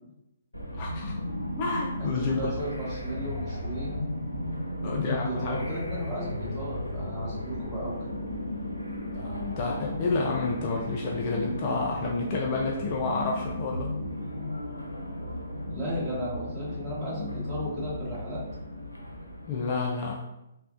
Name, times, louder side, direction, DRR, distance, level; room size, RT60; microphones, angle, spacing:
sound 1, 0.5-19.7, left 1 dB, 85° left, 0.5 m, -35 dB
voice 1, 0.7-1.2 1.6-2.5 4.8-5.7 9.1-13.9 19.4-20.2, left 3 dB, 35° left, -1 dB, 0.4 m, -30 dB
voice 2, 2.0-3.9 4.8-8.1 15.7-18.4 19.2-19.3, equal, 15° right, -9 dB, 1.4 m, -35 dB
3.3 x 2.1 x 2.5 m, 0.89 s
figure-of-eight pair, 125°, 0 cm